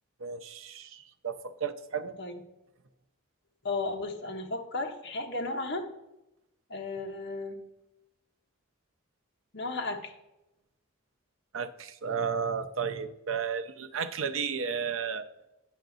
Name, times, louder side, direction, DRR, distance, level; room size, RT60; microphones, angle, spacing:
voice 1, 0.2-2.2 11.5-15.3, right 6 dB, 70° right, 11 dB, 0.6 m, -33 dB
voice 2, 3.6-5.8 6.7-7.6 9.5-10.1, left 2 dB, 55° left, 2 dB, 1.1 m, -34 dB
8.9 x 5.9 x 3.9 m, 0.91 s
head